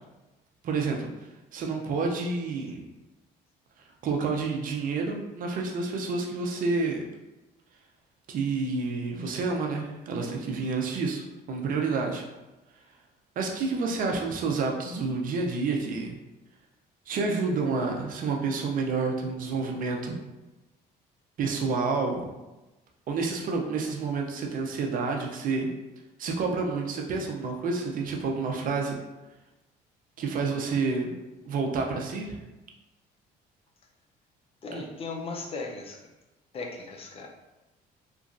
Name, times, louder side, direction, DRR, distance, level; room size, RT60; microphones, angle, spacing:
voice 1, 0.6-1.1 1.5-2.9 4.0-7.0 8.3-12.2 13.4-16.2 17.1-20.2 21.4-22.3 23.1-25.7 26.2-29.0 30.2-32.4 34.7-34.9, right 4 dB, 55° right, 1 dB, 0.6 m, -29 dB
voice 2, 34.6-36.1 36.5-37.3, left 3 dB, 35° left, 1 dB, 0.5 m, -37 dB
3.0 x 2.4 x 2.5 m, 1.1 s
cardioid pair, 110°, 17 cm